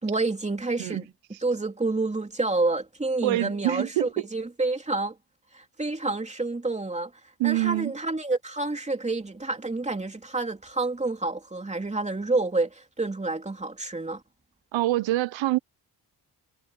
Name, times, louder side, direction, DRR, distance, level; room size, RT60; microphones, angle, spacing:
voice 1, 0.0-1.1 1.4-5.2 5.5-7.1 7.4-14.2, right 3 dB, 15° right, 2.9 m, -28 dB
voice 2, 3.2-4.1 7.4-7.9 14.7-15.6, right 17 dB, 85° right, 0.7 m, -25 dB
cardioid pair, 110°, 44 cm